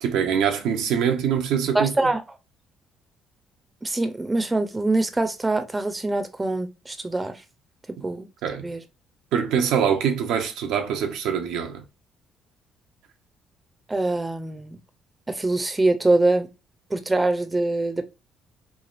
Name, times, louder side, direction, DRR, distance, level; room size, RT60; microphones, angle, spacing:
voice 1, 0.0-2.1 8.0-8.1 8.4-8.7 9.3-11.8, right 8 dB, 85° right, 0.7 m, -24 dB
voice 2, 1.7-2.2 3.8-7.3 8.0-8.3 8.6-8.8 13.9-14.8 15.3-16.5 16.9-18.0, right 2 dB, 15° right, 0.6 m, -24 dB
3.2 x 2.4 x 2.4 m
cardioid pair, 90°, 0 cm